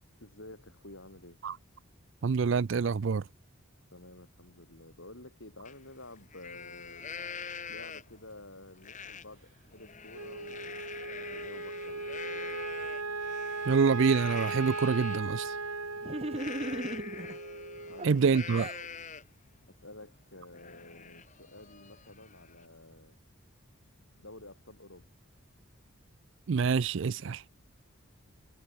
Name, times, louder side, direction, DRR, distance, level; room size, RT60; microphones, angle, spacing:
voice 1, 0.2-1.4 3.9-7.1 7.7-10.8 11.1-12.7 16.7-17.4 17.9-18.6 19.7-23.2 24.2-25.1, left 2 dB, 65° left, 7.6 m, -51 dB
voice 2, 2.2-3.2 13.7-15.5 18.0-18.7 26.5-27.4, right 5 dB, 60° right, 0.4 m, -26 dB
Livestock farm animals working animals, 5.6-5.7 6.2-8.2 8.8-9.2 9.6-15.2 16.3-19.4 19.8-19.9 20.3-22.6, left 6 dB, 35° left, 3.4 m, -45 dB
Wind instrument woodwind instrument, 10.1-18.6, right 3 dB, 80° right, 5.5 m, -38 dB
sound 1, 16.0-17.4 18.0-18.8, right 1 dB, 30° right, 1.2 m, -37 dB
head